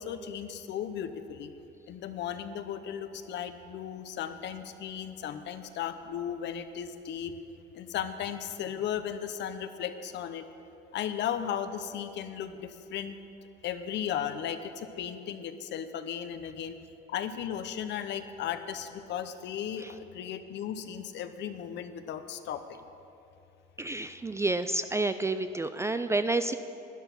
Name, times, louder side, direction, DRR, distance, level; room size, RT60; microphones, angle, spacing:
voice 1, 0.0-1.5 1.9-7.3 7.7-10.4 10.9-13.2 13.6-16.7 17.1-22.8, left 9 dB, 60° left, 10 dB, 0.8 m, -36 dB
voice 2, 23.8-26.5, right 2 dB, 15° right, 10 dB, 0.3 m, -29 dB
12.0 x 10.5 x 5.9 m, 2.8 s
cardioid pair, 110°, 21 cm